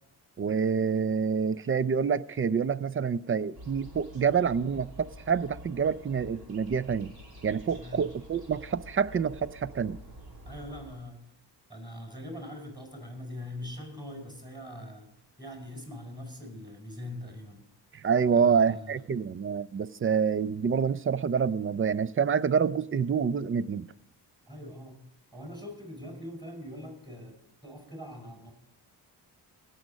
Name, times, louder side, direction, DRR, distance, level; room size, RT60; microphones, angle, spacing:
voice 1, 0.4-7.1 7.4-10.0 17.9-23.9, right 6 dB, 30° right, 0.4 m, -27 dB
sound 1, 3.5-11.0, equal, 60° right, 3.0 m, -48 dB
voice 2, 7.7-8.0 10.4-11.2 11.7-15.1 15.4-17.6 18.3-19.0 24.5-25.0 25.3-27.4 27.6-28.5, left 1 dB, 10° right, 4.7 m, -42 dB
17.5 x 6.4 x 5.2 m
cardioid pair, 80°, 42 cm